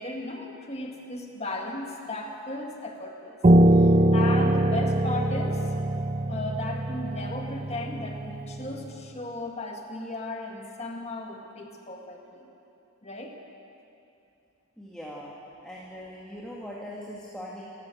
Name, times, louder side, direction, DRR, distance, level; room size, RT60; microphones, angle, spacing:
voice 1, 0.0-3.4 3.7-5.7 6.3-12.5 13.0-13.4, left 2 dB, 30° left, 2 dB, 2.0 m, -36 dB
Piano, 3.4-8.7, right 1 dB, 25° right, 0.4 m, -22 dB
voice 2, 14.8-15.3 15.6-17.6, equal, 5° left, -5 dB, 1.9 m, -40 dB
27.5 x 13.0 x 7.8 m, 2.8 s
head